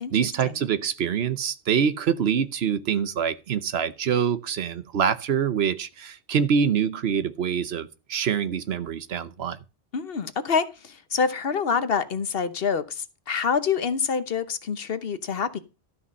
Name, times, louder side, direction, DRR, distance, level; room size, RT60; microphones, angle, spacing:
voice 1, 0.1-9.6, right 7 dB, 70° right, 1.0 m, -25 dB
voice 2, 9.9-15.6, left 6 dB, 65° left, 1.2 m, -26 dB
12.5 x 5.6 x 5.3 m
omnidirectional pair, 1.1 m